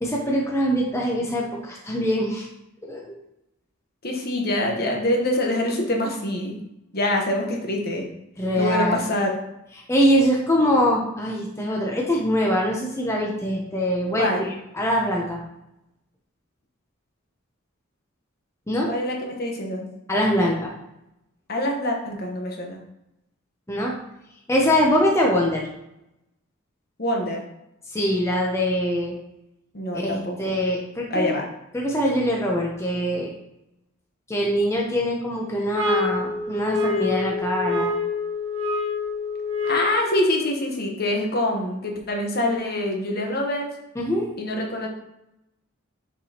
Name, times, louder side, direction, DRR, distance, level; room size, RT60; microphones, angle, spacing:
voice 1, 0.0-2.5 2.8-3.1 8.4-9.0 9.9-15.4 18.7-18.9 20.1-20.7 23.7-23.9 24.5-25.7 27.9-29.2 29.9-31.3 31.7-33.3 34.3-37.9 44.0-44.3, equal, 15° left, -2 dB, 0.7 m, -23 dB
voice 2, 4.0-6.6 6.9-8.0 8.6-9.3 14.2-14.5 18.9-19.9 21.5-22.8 27.0-27.4 29.7-30.5 31.1-31.5 39.7-43.7 44.4-44.9, left 1 dB, 50° left, 1 dB, 1.1 m, -25 dB
sound 1, 35.7-40.1, left 4 dB, 85° right, 1.2 m, -26 dB
6.6 x 5.0 x 2.9 m, 0.86 s
head